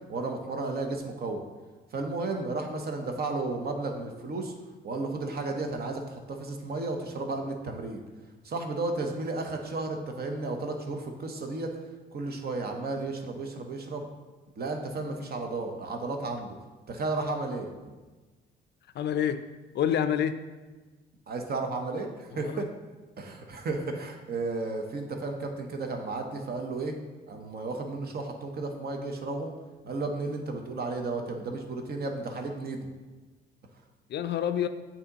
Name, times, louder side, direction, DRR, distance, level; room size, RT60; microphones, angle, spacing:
voice 1, 0.1-1.4 1.9-4.5 4.8-8.0 8.4-11.7 12.1-14.1 14.6-16.6 16.9-17.7 21.3-22.7 23.2-26.9 27.3-29.5 29.8-32.9, right 3 dB, 50° right, 3 dB, 0.9 m, -33 dB
voice 2, 19.0-19.5 19.7-20.4 22.3-22.7 34.1-34.7, left 9 dB, 60° left, 11 dB, 0.4 m, -27 dB
8.3 x 2.8 x 4.0 m, 1.2 s
cardioid pair, 90°, 20 cm